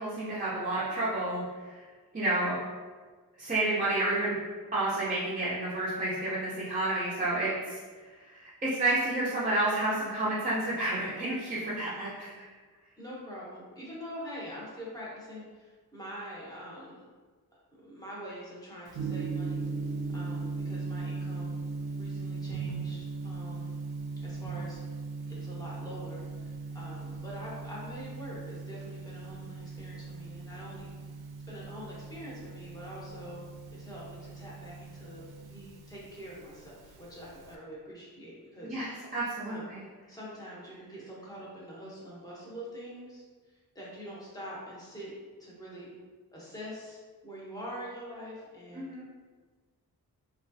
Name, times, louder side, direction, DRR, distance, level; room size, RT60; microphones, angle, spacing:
voice 1, 0.0-1.8 2.1-2.6 3.4-4.4 4.7-7.8 8.2-12.5 38.6-39.8 48.7-49.0, right 2 dB, 20° right, -9 dB, 0.5 m, -30 dB
voice 2, 13.0-17.1 17.7-19.6 20.1-23.0 23.2-23.7 24.2-24.8 25.3-30.9 31.5-33.5 33.7-39.0 39.5-39.7 40.1-45.9 46.3-49.2, equal, 10° left, -6 dB, 0.8 m, -45 dB
Gong, 18.9-37.5, right 4 dB, 75° right, 0.5 m, -38 dB
3.1 x 2.3 x 2.6 m, 1.4 s
wide cardioid pair, 135°, 38 cm